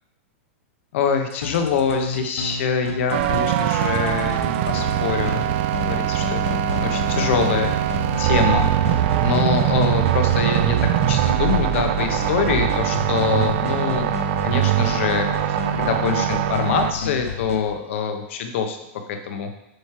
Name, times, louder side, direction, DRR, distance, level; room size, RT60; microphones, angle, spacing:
voice 1, 0.9-5.5 5.8-6.4 6.7-7.7 8.2-14.1 14.4-18.8 19.1-19.5, left 6 dB, 65° left, 5 dB, 1.1 m, -25 dB
sound 1, 1.3-17.6, left 5 dB, 90° left, 1.0 m, -31 dB
sound 2, 3.1-16.9, right 13 dB, 55° right, 0.4 m, -22 dB
7.8 x 3.2 x 5.9 m, 0.87 s
hypercardioid pair, 135°, 7 cm